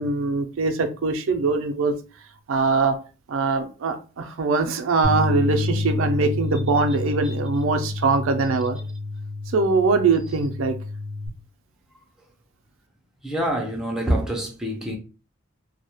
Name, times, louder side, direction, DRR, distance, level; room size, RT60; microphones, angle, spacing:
voice 1, 0.0-2.0 2.5-3.0 3.3-8.8 9.5-10.8, right 4 dB, 70° right, 0.4 m, -22 dB
Bass guitar, 5.0-11.3, left 2 dB, 60° left, 0.9 m, -28 dB
voice 2, 13.2-15.0, right 1 dB, 5° right, 0.4 m, -26 dB
2.2 x 2.0 x 2.9 m
head